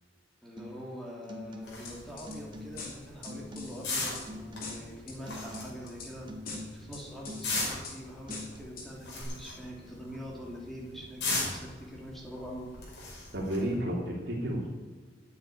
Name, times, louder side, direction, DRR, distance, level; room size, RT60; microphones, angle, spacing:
voice 1, 0.4-12.7, equal, ahead, -3 dB, 2.9 m, -44 dB
sound 1, 0.6-0.9 1.2-1.9 2.2-2.9 3.3-3.9 4.3-5.0 5.3-5.9 6.3-6.9 7.2-7.9 8.3-8.6, left 1 dB, 25° right, 1.4 m, -44 dB
sound 2, 1.6-13.8, left 3 dB, 70° left, 5.3 m, -39 dB
sound 3, 1.8-2.4 2.8-4.3 4.6-5.2 5.5-6.1 6.4-7.4 7.8-8.0 8.3-8.9 9.2-9.3, left 4 dB, 50° left, 3.4 m, -43 dB
voice 2, 13.3-14.7, equal, 65° right, 0 dB, 3.0 m, -31 dB
9.4 x 8.8 x 9.7 m, 1.4 s
head